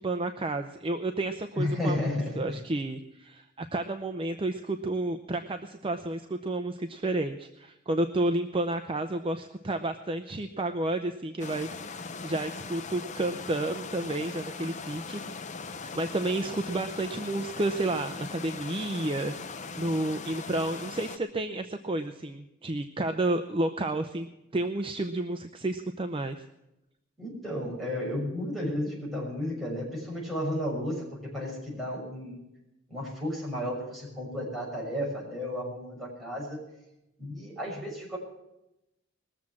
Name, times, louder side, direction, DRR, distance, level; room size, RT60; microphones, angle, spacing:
voice 1, 0.0-15.2 15.9-19.3 19.7-24.3 24.5-26.4, right 2 dB, 25° right, 7 dB, 0.6 m, -31 dB
voice 2, 1.6-2.6 27.2-32.4 32.9-36.6 37.2-38.2, left 1 dB, ahead, -5 dB, 6.3 m, -33 dB
sound 1, 11.4-21.2, left 4 dB, 35° left, 0.7 m, -40 dB
20.5 x 7.3 x 7.5 m, 0.89 s
head